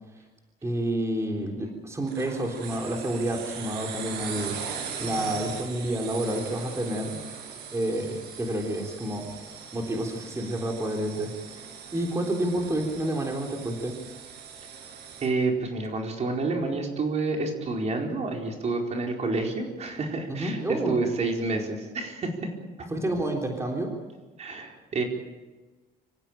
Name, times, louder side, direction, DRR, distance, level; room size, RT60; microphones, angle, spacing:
voice 1, 0.6-4.5 5.0-7.2 7.7-9.3 9.7-11.6 11.9-13.9 20.3-21.0 22.9-23.9, right 1 dB, 15° right, 1 dB, 3.7 m, -29 dB
sound 1, 2.1-15.3, right 6 dB, 85° right, 5.8 m, -40 dB
voice 2, 15.2-22.5 22.8-22.9 24.4-25.0, right 3 dB, 40° right, 1 dB, 4.6 m, -29 dB
26.0 x 15.5 x 9.0 m, 1.2 s
cardioid pair, 110°, 17 cm